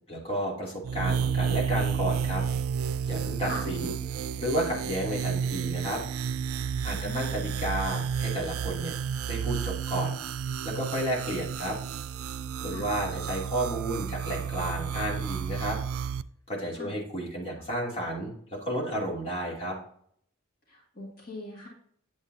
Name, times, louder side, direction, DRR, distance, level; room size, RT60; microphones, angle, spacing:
voice 1, 0.1-2.4 3.1-3.9 4.4-6.0 6.8-8.9 9.3-10.2 10.6-11.8 12.6-15.8 16.5-19.8, right 1 dB, 30° left, -4 dB, 2.8 m, -32 dB
sound 1, 0.8-16.2, right 7 dB, 85° right, 0.4 m, -31 dB
voice 2, 6.9-7.3 12.7-12.9 16.8-16.9 20.7-21.7, left 1 dB, 45° left, -3 dB, 2.2 m, -40 dB
8.9 x 7.7 x 2.7 m, 0.62 s
head